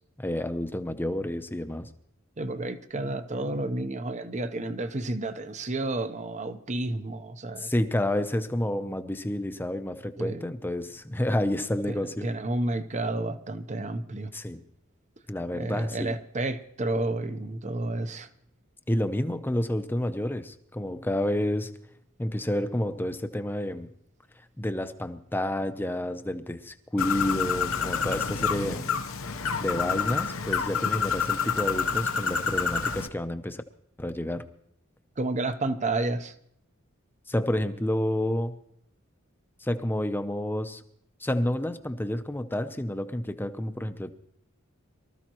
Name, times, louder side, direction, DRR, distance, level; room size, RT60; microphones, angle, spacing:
voice 1, 0.2-1.9 7.6-12.3 14.3-14.6 15.3-16.1 18.9-21.7 22.2-23.9 24.6-28.9 29.6-33.6 34.0-34.4 37.3-38.5 39.6-40.8 41.2-44.1, left 1 dB, 10° left, 9 dB, 0.7 m, -29 dB
voice 2, 2.4-7.7 10.2-10.5 12.2-14.3 15.5-18.3 35.2-36.3, right 2 dB, 35° right, 11 dB, 0.8 m, -31 dB
Bird, 27.0-33.1, left 6 dB, 80° left, 0.9 m, -28 dB
24.0 x 13.5 x 3.0 m, 0.72 s
head